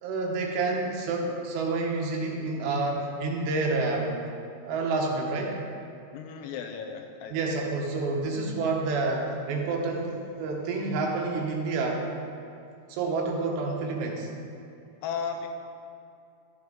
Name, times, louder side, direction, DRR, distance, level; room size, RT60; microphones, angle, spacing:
voice 1, 0.0-4.2 4.7-5.6 7.3-12.0 12.9-14.3, right 3 dB, 85° right, 0 dB, 3.3 m, -29 dB
voice 2, 6.1-7.6 15.0-15.5, left 6 dB, 80° left, 4 dB, 2.7 m, -35 dB
13.0 x 7.8 x 3.8 m, 2.6 s
omnidirectional pair, 4.9 m